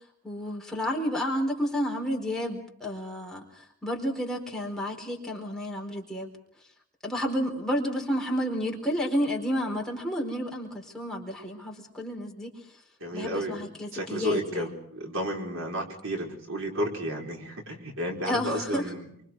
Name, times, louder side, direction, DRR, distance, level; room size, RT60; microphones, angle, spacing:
voice 1, 0.2-6.3 7.0-12.5 13.1-14.7 18.3-18.8, equal, 5° left, -1 dB, 4.4 m, -31 dB
voice 2, 13.0-13.7 13.9-19.2, equal, 80° right, 1 dB, 5.2 m, -32 dB
28.5 x 25.0 x 4.8 m, 0.67 s
head